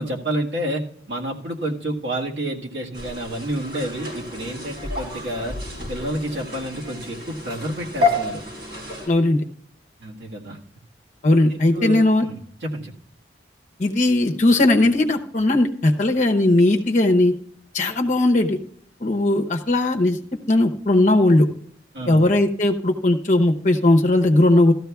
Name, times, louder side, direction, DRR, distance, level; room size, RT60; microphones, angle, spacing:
voice 1, 0.0-5.6 5.9-8.4 10.0-10.6 11.5-12.9 21.9-22.2, right 1 dB, 80° right, -2 dB, 1.6 m, -29 dB
sound 1, 2.9-9.1, left 2 dB, 60° right, 4.4 m, -29 dB
voice 2, 9.1-9.4 11.2-12.3 13.8-17.3 17.7-18.6 19.0-20.2 20.5-21.5 22.1-24.7, left 2 dB, 40° left, 4 dB, 0.8 m, -18 dB
16.0 x 13.5 x 2.3 m, 0.62 s
head